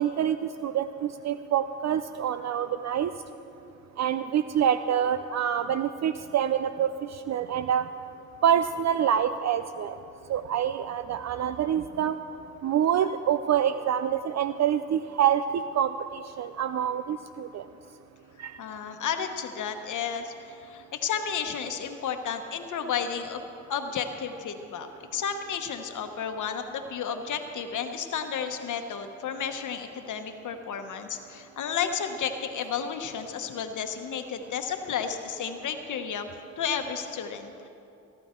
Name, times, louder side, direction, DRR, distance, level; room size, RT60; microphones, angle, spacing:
voice 1, 0.0-3.1 4.0-7.9 8.4-10.0 10.3-12.2 12.6-17.6 18.4-18.6, right 9 dB, 60° right, 11 dB, 0.5 m, -26 dB
voice 2, 18.6-23.4 23.7-36.3 36.6-37.7, left 7 dB, 75° left, 6 dB, 1.0 m, -32 dB
17.5 x 12.5 x 4.4 m, 2.7 s
cardioid pair, 65°, 31 cm